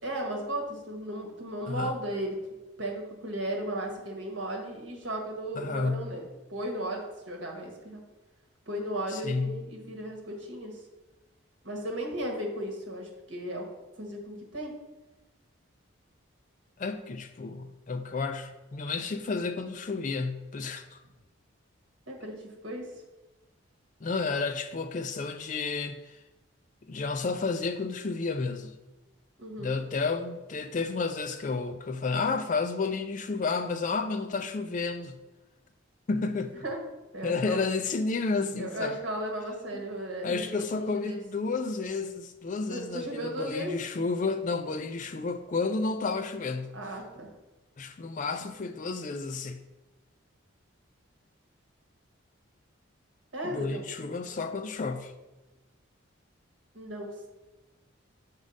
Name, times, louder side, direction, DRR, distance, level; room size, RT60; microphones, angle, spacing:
voice 1, 0.0-2.4 2.8-6.2 6.5-8.0 8.7-10.8 11.6-13.7 14.0-14.7 22.1-22.9 29.4-29.7 36.6-36.8 37.1-37.6 38.6-41.2 42.7-43.7 46.7-47.3 53.3-53.8 56.7-57.3, right 1 dB, 65° right, 1 dB, 1.4 m, -35 dB
voice 2, 5.5-6.1 9.1-9.6 16.8-21.0 24.0-26.2 26.8-28.7 29.6-35.2 36.1-36.6 37.2-39.0 39.7-39.8 40.2-46.7 47.8-49.6 53.4-55.1, left 4 dB, 40° left, 8 dB, 0.3 m, -31 dB
6.3 x 3.6 x 5.3 m, 1.1 s
head